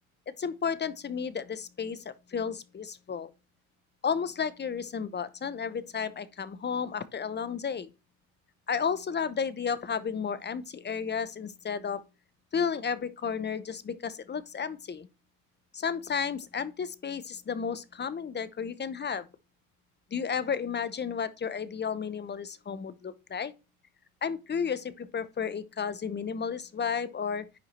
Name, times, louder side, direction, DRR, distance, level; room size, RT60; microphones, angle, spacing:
voice 1, 0.4-3.3 4.0-7.9 8.7-12.0 12.5-15.1 15.7-19.3 20.1-23.5 24.2-27.5, left 6 dB, 25° left, 0.8 m, -32 dB
10.5 x 4.7 x 4.4 m
hypercardioid pair, 75°, 44 cm